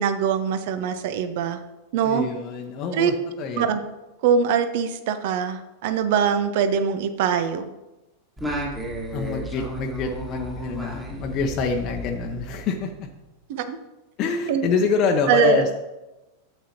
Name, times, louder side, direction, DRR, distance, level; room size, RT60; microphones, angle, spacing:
voice 1, 0.0-1.6 1.9-2.3 2.9-3.1 3.6-3.8 4.2-7.7 13.5-13.8 14.5-14.6 15.3-15.6, right 7 dB, 50° right, 10 dB, 0.8 m, -22 dB
voice 2, 2.0-3.7 9.1-13.1 14.2-15.8, left 5 dB, 35° left, 3 dB, 0.8 m, -26 dB
Singing, 8.4-13.1, right 1 dB, 10° right, 1.9 m, -33 dB
11.0 x 8.0 x 2.9 m, 1.0 s
figure-of-eight pair, 90°, 0 cm